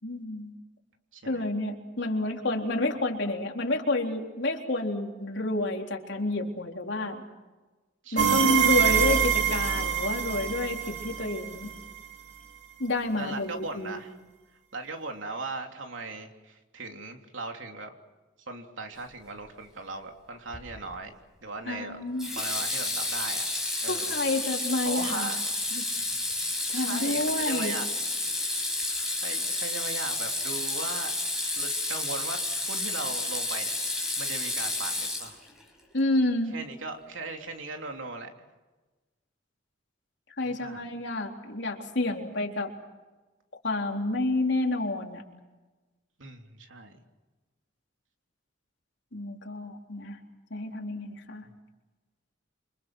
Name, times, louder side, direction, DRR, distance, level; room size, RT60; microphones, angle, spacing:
voice 1, 0.0-0.5 1.2-7.2 8.1-11.7 12.8-14.0 21.7-22.3 23.9-25.3 25.7-25.8 26.7-27.8 35.9-36.6 40.4-42.8 43.6-45.3 49.1-50.2 50.5-51.4, left 2 dB, 65° left, 1 dB, 3.8 m, -29 dB
voice 2, 1.1-1.5 8.0-8.5 13.2-14.1 14.7-17.9 18.5-21.1 21.4-22.0 22.3-23.4 23.8-24.2 24.8-25.5 26.7-27.9 28.3-28.6 28.9-31.1 31.6-33.7 34.2-35.4 36.5-38.5 40.4-40.9 46.2-47.0 51.4-51.5, right 3 dB, 80° right, 3 dB, 3.2 m, -38 dB
sound 1, 8.2-11.9, right 8 dB, 65° right, 2.6 m, -25 dB
Water tap faucet / Sink (filling or washing), 20.5-20.9 22.2-35.6, left 2 dB, 5° right, 5.6 m, -31 dB
29.0 x 26.0 x 6.3 m, 1.2 s
head